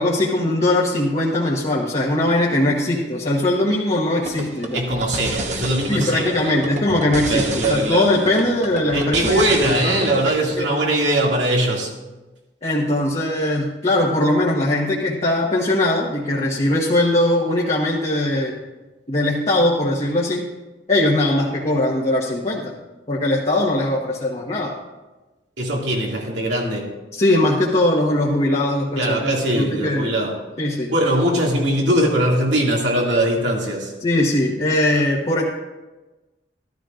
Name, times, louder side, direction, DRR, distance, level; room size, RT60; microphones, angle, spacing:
voice 1, 0.0-4.8 5.9-7.4 7.7-9.4 9.8-10.1 10.6-10.7 12.6-18.5 19.1-20.5 20.9-22.7 23.1-24.7 27.1-30.1 30.6-30.9 34.0-35.4, left 1 dB, 40° left, -4 dB, 1.3 m, -20 dB
sound 1, 4.2-10.3, right 2 dB, 40° right, 1.2 m, -30 dB
voice 2, 4.7-6.6 7.3-8.1 8.9-11.9 25.6-26.9 29.0-30.4 30.9-33.9, right 1 dB, 80° right, -2 dB, 2.4 m, -21 dB
13.5 x 13.0 x 2.5 m, 1.1 s
head